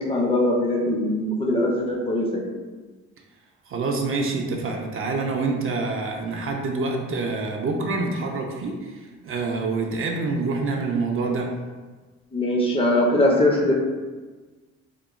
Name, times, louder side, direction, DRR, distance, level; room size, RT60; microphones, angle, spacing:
voice 1, 0.0-2.5 12.3-13.7, left 1 dB, 20° left, -2 dB, 0.4 m, -21 dB
voice 2, 3.7-11.5, right 3 dB, 45° right, 1 dB, 0.4 m, -26 dB
2.9 x 2.1 x 2.4 m, 1.3 s
cardioid pair, 90°, 30 cm